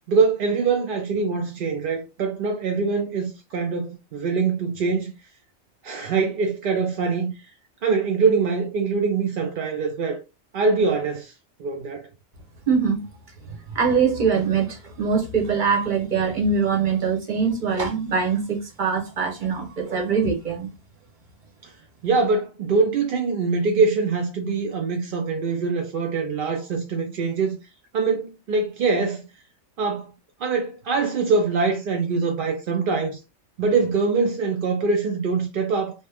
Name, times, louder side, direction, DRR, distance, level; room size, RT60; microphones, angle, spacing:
voice 1, 0.1-5.1 5.8-7.3 7.8-10.2 10.5-11.3 11.6-12.0 21.6-21.7 22.0-27.5 27.9-29.2 29.8-30.1 30.4-33.2 33.6-35.9, right 4 dB, 60° right, 0.6 m, -23 dB
voice 2, 12.7-13.0 13.7-20.7, right 5 dB, 45° right, 0.9 m, -23 dB
2.9 x 2.1 x 3.3 m
omnidirectional pair, 1.3 m